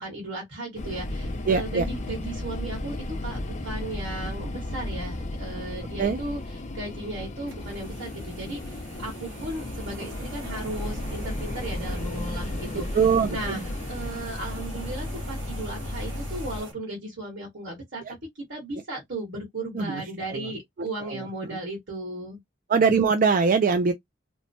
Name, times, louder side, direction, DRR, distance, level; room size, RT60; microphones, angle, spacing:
voice 1, 0.0-3.0 3.2-6.4 6.7-12.8 13.3-18.0 18.5-22.4, right 1 dB, 70° right, 1.4 m, -36 dB
sound 1, 0.8-16.6, left 1 dB, 40° left, 0.5 m, -34 dB
voice 2, 1.5-1.8 6.0-6.2 12.9-13.6 18.0-18.1 19.7-20.5 21.0-21.6 22.7-23.9, right 5 dB, 45° right, 0.4 m, -23 dB
sound 2, 7.5-16.7, right 2 dB, 85° right, 1.1 m, -44 dB
2.9 x 2.1 x 2.6 m
head